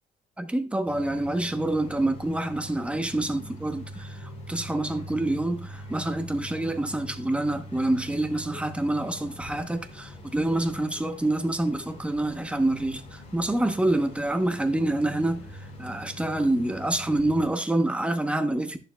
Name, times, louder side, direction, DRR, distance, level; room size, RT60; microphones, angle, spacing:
voice 1, 0.4-15.4 15.8-18.8, right 1 dB, 5° right, 0.9 m, -27 dB
sound 1, 0.9-17.5, equal, 35° left, 3.2 m, -43 dB
11.0 x 6.8 x 2.3 m
cardioid pair, 110°, 17 cm